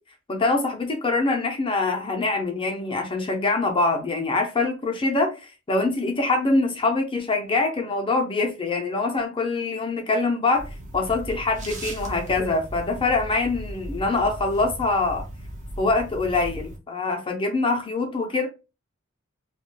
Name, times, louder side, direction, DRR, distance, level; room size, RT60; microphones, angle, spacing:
voice 1, 0.3-15.2 15.8-18.5, left 3 dB, 25° left, 0.4 m, -24 dB
sound 1, 10.6-16.8, right 1 dB, 30° right, 0.5 m, -37 dB
2.3 x 2.1 x 3.1 m
head